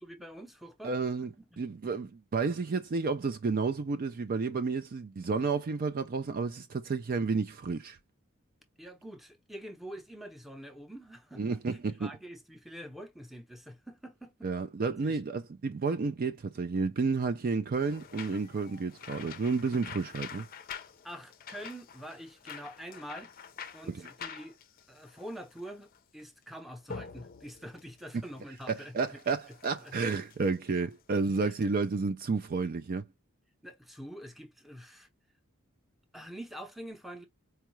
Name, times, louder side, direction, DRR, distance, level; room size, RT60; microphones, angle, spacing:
voice 1, 0.0-0.9 1.4-1.6 8.8-14.3 15.0-15.2 21.0-23.3 23.7-24.6 24.9-29.2 29.8-29.9 31.4-31.5 33.6-35.1 36.1-37.3, equal, ahead, 0.7 m, -46 dB
voice 2, 0.8-8.0 11.4-12.1 14.4-20.5 23.9-24.1 28.7-33.0, right 4 dB, 45° right, 0.4 m, -31 dB
sound 1, 17.8-31.5, left 7 dB, 45° left, 0.5 m, -47 dB
4.6 x 2.4 x 3.0 m
head